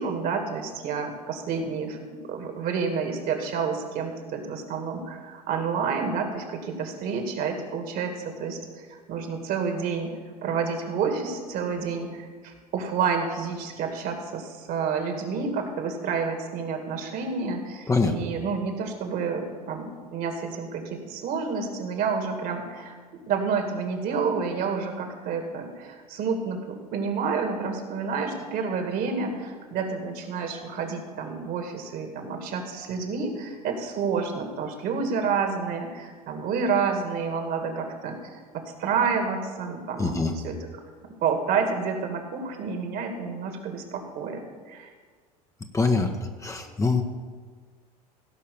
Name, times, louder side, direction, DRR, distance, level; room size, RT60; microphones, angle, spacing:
voice 1, 0.0-2.0 2.2-10.1 10.4-23.0 23.3-40.7 41.2-44.4 44.7-44.9, right 5 dB, 50° right, 5 dB, 2.4 m, -29 dB
voice 2, 40.0-40.3 45.7-46.1 46.4-47.0, left 3 dB, 15° left, 4 dB, 1.1 m, -23 dB
16.5 x 5.6 x 7.1 m, 1.5 s
hypercardioid pair, 80°, 20 cm